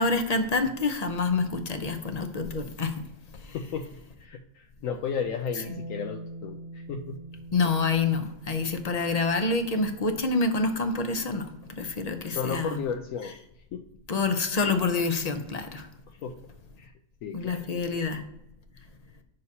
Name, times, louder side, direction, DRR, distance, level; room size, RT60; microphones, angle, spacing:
voice 1, 0.0-2.9 7.5-11.5 11.8-12.8 14.1-15.9 17.3-18.2, left 3 dB, 45° left, 0.5 m, -27 dB
voice 2, 3.5-3.9 4.2-7.2 12.3-13.4 13.7-13.8 16.2-16.3 16.8-16.9 17.2-18.1, left 6 dB, 80° left, 1.0 m, -34 dB
Bass guitar, 5.6-11.8, right 1 dB, 80° right, 1.5 m, -45 dB
9.3 x 6.6 x 2.8 m
omnidirectional pair, 1.4 m